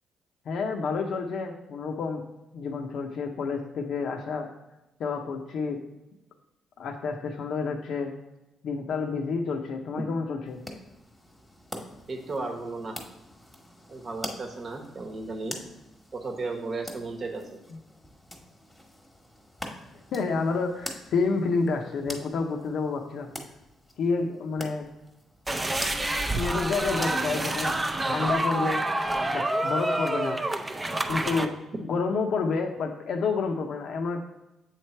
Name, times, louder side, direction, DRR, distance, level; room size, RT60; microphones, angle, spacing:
voice 1, 0.5-2.2 2.5-4.5 5.0-5.8 6.8-8.1 8.6-10.6 17.7-17.8 20.1-23.3 24.0-24.9 26.3-27.8 28.1-28.8 29.3-30.4 31.1-31.5 31.8-34.2, left 4 dB, 70° left, 3 dB, 0.6 m, -29 dB
sound 1, 10.5-27.8, left 1 dB, 10° left, 1.1 m, -44 dB
voice 2, 12.1-13.0 13.9-15.6 16.1-17.4, right 3 dB, 45° right, 3 dB, 1.0 m, -34 dB
sound 2, 25.5-31.5, right 1 dB, 15° right, 0.5 m, -28 dB
7.8 x 3.3 x 4.3 m, 0.97 s
cardioid pair, 90°, 0 cm